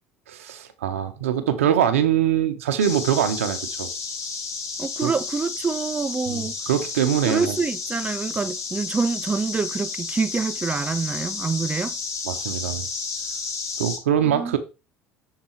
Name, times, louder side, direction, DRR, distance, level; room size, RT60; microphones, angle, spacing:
voice 1, 0.3-3.9 5.0-5.1 6.3-7.6 12.3-12.9 13.8-14.6, right 9 dB, 80° right, 0.8 m, -23 dB
sound 1, 2.8-14.0, left 4 dB, 45° left, 2.5 m, -32 dB
voice 2, 4.8-6.6 7.3-12.0 14.3-14.6, right 4 dB, 20° right, 0.4 m, -26 dB
6.7 x 3.8 x 4.4 m
hypercardioid pair, 65°, 7 cm